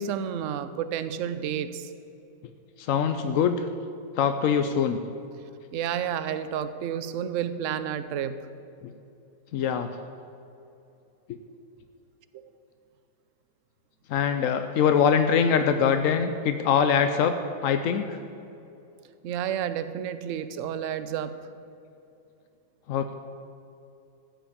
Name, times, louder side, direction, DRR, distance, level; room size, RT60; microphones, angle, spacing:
voice 1, 0.0-1.9 5.7-8.4 12.3-12.5 19.2-21.4, right 9 dB, 70° right, 12 dB, 0.7 m, -30 dB
voice 2, 2.8-3.6 4.2-5.0 8.8-8.9 9.5-9.9 11.3-11.4 14.1-17.3 17.6-18.2 22.9-23.1, left 7 dB, 70° left, 8 dB, 0.7 m, -23 dB
14.5 x 6.2 x 8.3 m, 2.8 s
omnidirectional pair, 2.0 m